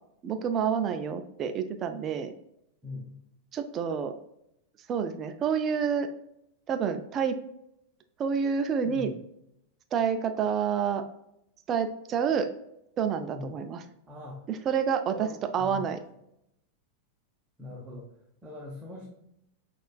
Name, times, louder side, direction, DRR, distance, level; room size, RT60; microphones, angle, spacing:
voice 1, 0.2-2.3 3.5-4.1 4.9-6.1 6.7-7.4 8.2-9.1 9.9-11.0 11.7-12.5 13.0-13.8 14.5-15.3 15.5-16.0, right 7 dB, 30° right, 8 dB, 0.4 m, -28 dB
voice 2, 2.8-3.2 8.8-9.1 13.3-13.5 14.1-14.4 15.1-15.9 17.6-18.1 18.4-19.1, left 2 dB, 10° right, -3 dB, 0.8 m, -41 dB
6.2 x 2.4 x 2.3 m, 0.79 s
figure-of-eight pair, 90°, 0 cm